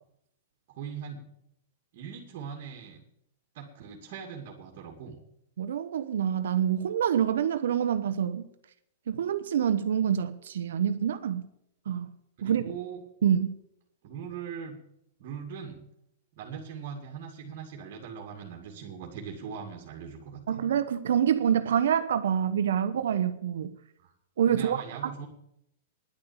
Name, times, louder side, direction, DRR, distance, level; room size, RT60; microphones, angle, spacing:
voice 1, 0.7-1.2 1.9-3.0 3.5-5.2 12.4-13.0 14.0-14.8 15.2-15.8 16.3-20.4 24.0-24.1 24.5-25.3, right 7 dB, 55° right, 2.5 m, -40 dB
voice 2, 5.6-8.5 9.1-11.5 11.9-12.1 12.4-12.6 13.2-13.6 20.5-23.7 24.4-24.8 25.0-25.1, right 9 dB, 80° right, 1.0 m, -26 dB
10.5 x 8.8 x 8.8 m
hypercardioid pair, 145°, 0 cm